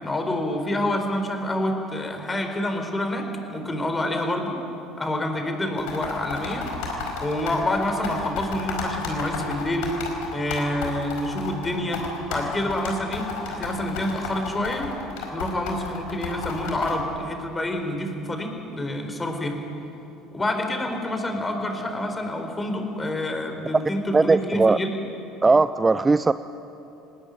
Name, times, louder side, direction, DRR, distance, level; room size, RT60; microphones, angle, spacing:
voice 1, 0.0-4.5 5.0-6.7 7.2-9.9 10.3-12.0 12.3-14.9 15.3-19.6 20.3-24.9, left 1 dB, 20° left, 5 dB, 4.4 m, -27 dB
sound 1, 5.8-16.9, left 5 dB, 75° left, 4.6 m, -32 dB
voice 2, 24.1-24.8 25.4-26.3, right 3 dB, 20° right, 14 dB, 0.5 m, -18 dB
19.5 x 19.0 x 9.4 m, 2.9 s
hypercardioid pair, 70°, 0 cm